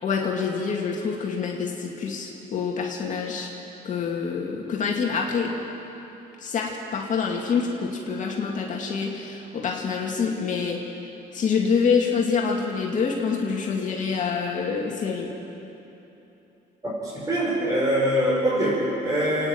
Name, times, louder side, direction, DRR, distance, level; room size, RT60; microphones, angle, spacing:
voice 1, 0.0-3.5 3.8-5.5 6.4-10.8 11.3-15.3, left 5 dB, 50° left, -1 dB, 2.3 m, -26 dB
voice 2, 16.8-19.5, equal, 20° right, -6 dB, 5.3 m, -24 dB
29.0 x 9.9 x 9.4 m, 3.0 s
cardioid pair, 110°, 17 cm